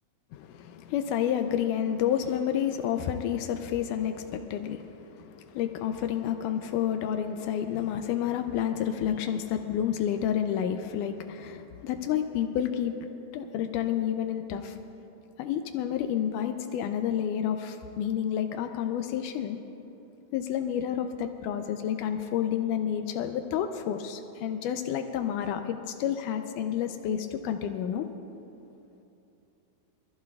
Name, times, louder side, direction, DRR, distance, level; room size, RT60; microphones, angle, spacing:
voice 1, 0.3-13.0 13.3-14.8 15.4-19.6 20.3-28.1, left 9 dB, 85° left, 6 dB, 1.8 m, -30 dB
24.0 x 14.5 x 2.3 m, 2.8 s
omnidirectional pair, 4.3 m